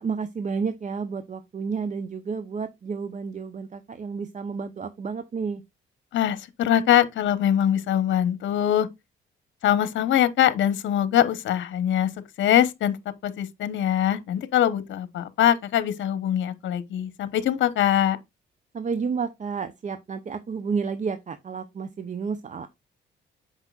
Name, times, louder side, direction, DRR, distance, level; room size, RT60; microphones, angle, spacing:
voice 1, 0.0-5.6 18.7-22.7, right 5 dB, 40° right, 0.8 m, -31 dB
voice 2, 6.1-8.9 9.6-12.1 12.4-18.2, left 10 dB, 70° left, 1.1 m, -23 dB
8.1 x 5.8 x 2.4 m
cardioid pair, 90°, 20 cm